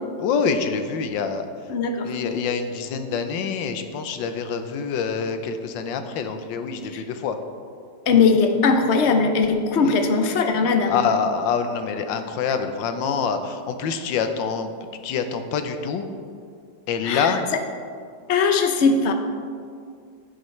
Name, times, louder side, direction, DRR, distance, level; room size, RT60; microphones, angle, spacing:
voice 1, 0.2-1.4 2.0-7.4 9.8-10.0 10.9-14.7 15.0-16.1 16.9-17.5, left 6 dB, 80° left, 8 dB, 1.4 m, -26 dB
voice 2, 1.7-2.1 6.9-7.0 8.1-11.1 17.0-17.4 18.3-19.1, left 4 dB, 60° left, 5 dB, 0.7 m, -19 dB
11.5 x 8.8 x 3.2 m, 2.2 s
omnidirectional pair, 2.0 m